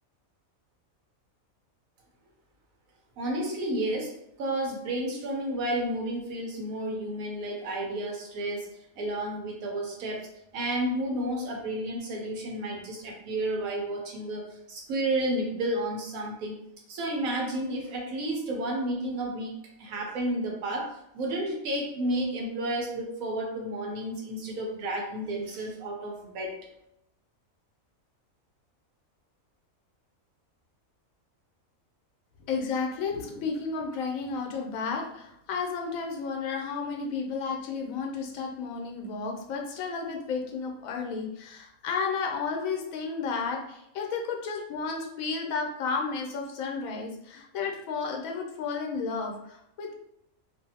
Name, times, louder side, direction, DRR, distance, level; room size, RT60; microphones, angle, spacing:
voice 1, 3.2-4.1 4.4-8.7 9.0-10.3 10.5-16.6 16.9-19.5 19.8-26.5, right 1 dB, 85° right, -1 dB, 1.1 m, -31 dB
voice 2, 32.4-49.9, left 5 dB, 80° left, 2 dB, 1.0 m, -32 dB
2.6 x 2.5 x 2.7 m, 0.79 s
omnidirectional pair, 1.4 m